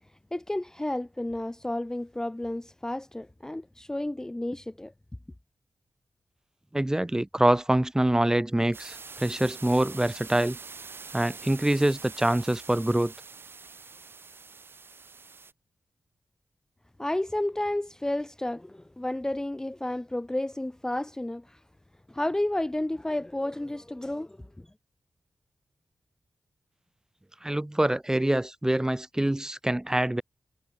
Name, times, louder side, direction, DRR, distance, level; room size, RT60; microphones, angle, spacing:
voice 1, 0.3-4.9 17.0-21.6 22.1-24.7, left 1 dB, 15° left, 0.5 m, -31 dB
voice 2, 6.7-10.6 11.1-13.1 27.4-30.2, right 1 dB, 15° right, 0.8 m, -25 dB
sound 1, 8.7-15.5, right 4 dB, 55° right, 1.8 m, -45 dB
cardioid pair, 65°, 5 cm